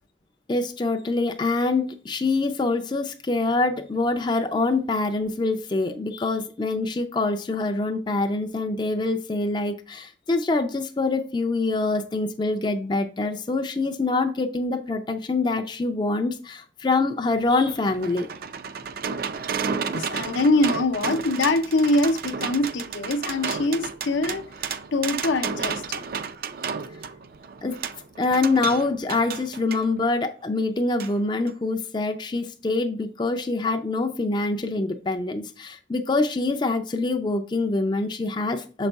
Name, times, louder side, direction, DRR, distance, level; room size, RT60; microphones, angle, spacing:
voice 1, 0.5-18.3 27.6-27.8 28.2-38.9, left 3 dB, 25° left, 0.4 m, -25 dB
sound 1, 17.3-29.9 31.0-31.1 31.5-31.6, right 6 dB, 50° right, 0.4 m, -32 dB
voice 2, 19.9-24.5 24.9-26.0, left 2 dB, 75° left, 0.6 m, -23 dB
6.7 x 4.1 x 3.4 m
head